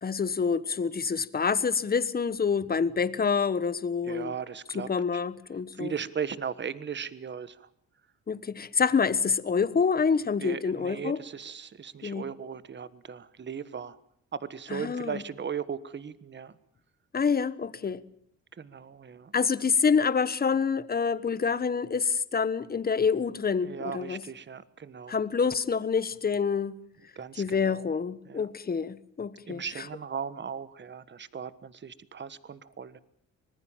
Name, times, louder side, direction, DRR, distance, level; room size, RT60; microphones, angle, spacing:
voice 1, 0.0-4.3 4.7-5.9 8.3-11.2 12.0-12.2 14.7-15.2 17.1-18.0 19.3-24.2 25.1-26.7 27.4-29.9, left 5 dB, 30° left, 1.2 m, -27 dB
voice 2, 4.0-5.2 5.7-7.7 10.4-14.0 14.3-16.6 18.6-19.3 23.6-25.2 27.1-27.9 28.2-28.5 29.5-33.0, right 7 dB, 35° right, 1.4 m, -37 dB
25.5 x 19.5 x 7.4 m
cardioid pair, 90°, 30 cm